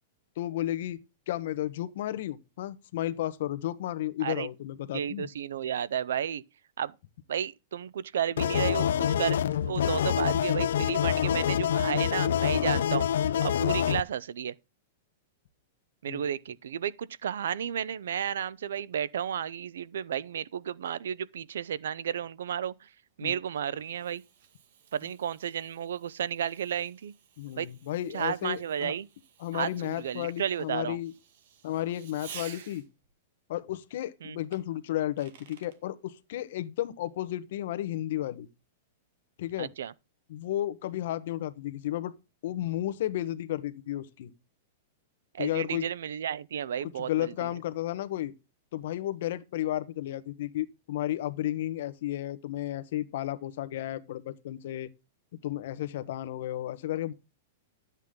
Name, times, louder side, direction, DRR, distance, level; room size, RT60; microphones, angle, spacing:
voice 1, 0.4-1.0 1.3-5.3 16.1-16.3 23.2-23.3 27.4-28.9 29.4-31.1 31.6-32.8 33.5-38.5 39.4-39.7 40.3-42.1 42.4-44.3 45.4-45.9 47.1-48.3 48.7-54.9 55.4-57.1, left 13 dB, 55° left, 1.0 m, -33 dB
voice 2, 4.9-6.4 6.8-6.9 7.3-14.6 16.0-22.9 23.2-24.2 24.9-27.1 27.6-27.7 28.1-29.1 29.5-31.0 34.2-34.4 39.6-39.9 45.3-47.5, right 9 dB, 85° right, 0.6 m, -33 dB
sound 1, 8.4-14.0, left 9 dB, 80° left, 0.5 m, -26 dB
Fireworks, 23.2-33.1 34.5-35.8, right 8 dB, 55° right, 1.9 m, -52 dB
12.0 x 8.2 x 3.7 m
supercardioid pair, 170°, 0 cm